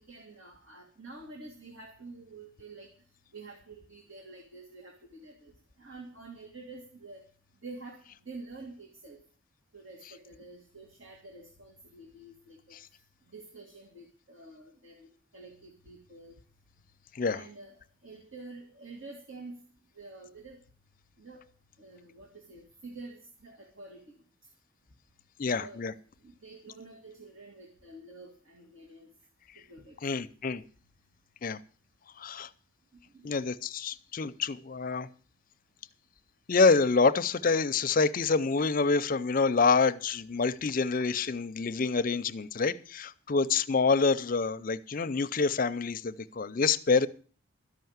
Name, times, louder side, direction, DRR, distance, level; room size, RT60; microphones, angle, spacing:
voice 1, 0.0-2.9 3.3-5.5 5.8-7.3 7.6-9.2 9.7-12.8 13.3-16.4 17.3-19.6 20.0-20.6 21.2-21.4 21.8-24.2 25.6-25.9 26.2-29.1 29.7-30.2 33.1-33.4 43.3-43.5, right 3 dB, 70° right, 2 dB, 2.0 m, -48 dB
voice 2, 17.1-17.4 25.4-25.9 30.0-30.6 31.4-31.6 32.2-32.5 33.2-35.1 36.5-47.1, left 4 dB, 40° left, 14 dB, 0.5 m, -27 dB
13.0 x 5.7 x 9.3 m, 0.42 s
head